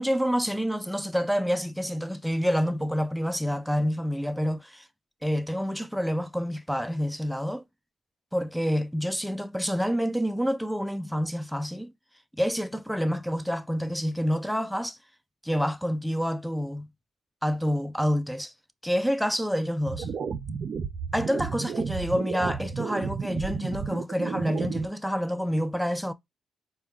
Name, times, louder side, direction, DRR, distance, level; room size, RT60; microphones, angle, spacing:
voice 1, 0.0-4.9 5.2-7.6 8.3-11.9 12.3-15.0 15.4-16.9 17.4-18.5 18.8-20.1 21.1-26.1, equal, ahead, 0.4 m, -28 dB
sound 1, 19.9-24.9, right 6 dB, 50° right, 0.5 m, -32 dB
4.3 x 2.3 x 3.5 m
cardioid pair, 90°, 0 cm